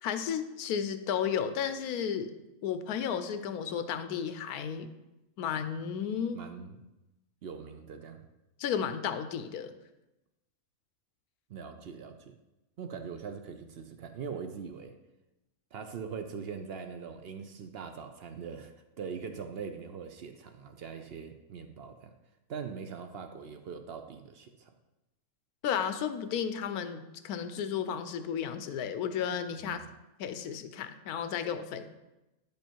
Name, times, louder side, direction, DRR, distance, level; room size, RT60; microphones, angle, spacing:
voice 1, 0.0-2.3 2.6-4.9 5.4-6.4 8.6-9.7 25.6-29.8 30.2-31.9, left 8 dB, 80° left, 10 dB, 1.1 m, -33 dB
voice 2, 6.3-6.8 7.4-8.2 11.5-12.4 12.8-14.9 15.7-22.1 22.5-24.7 29.6-29.8, right 6 dB, 60° right, 7 dB, 0.6 m, -42 dB
9.0 x 5.3 x 4.4 m, 0.98 s
omnidirectional pair, 1.6 m